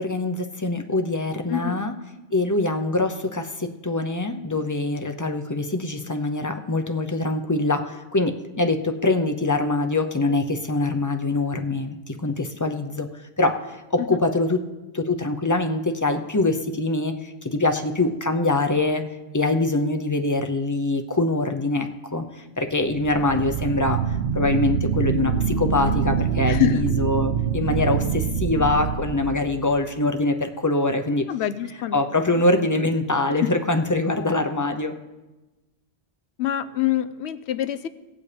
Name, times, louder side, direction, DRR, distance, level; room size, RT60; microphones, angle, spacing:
voice 1, 0.0-1.9 2.3-13.6 13.9-14.6 14.9-19.0 19.3-22.3 22.6-24.0 24.3-31.2 31.9-34.9, left 2 dB, 20° left, 5 dB, 0.6 m, -24 dB
voice 2, 1.5-1.8 14.1-14.2 26.4-26.8 31.3-32.1 33.4-33.5 36.4-37.9, left 12 dB, 85° left, 12 dB, 0.9 m, -25 dB
sound 1, 22.8-29.8, right 7 dB, 60° right, 0.8 m, -25 dB
18.5 x 8.4 x 3.3 m, 1.1 s
omnidirectional pair, 1.1 m